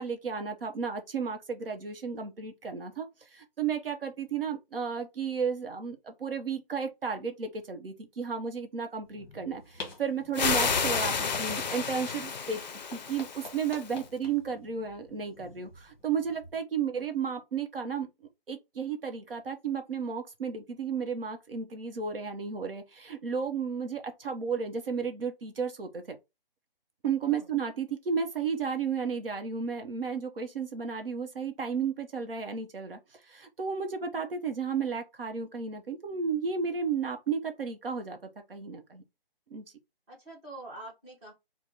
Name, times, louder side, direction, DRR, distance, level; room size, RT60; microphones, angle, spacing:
voice 1, 0.0-12.6 12.9-18.1 18.5-26.2 27.0-39.0 39.5-39.6, right 6 dB, 70° right, 0.7 m, -33 dB
sound 1, 9.0-16.6, left 3 dB, 25° left, 0.8 m, -48 dB
sound 2, 10.3-14.0, left 5 dB, 50° left, 0.4 m, -31 dB
voice 2, 27.2-27.5 40.1-41.3, right 2 dB, 10° right, 0.6 m, -46 dB
3.3 x 2.1 x 2.8 m
figure-of-eight pair, 150°, 30 cm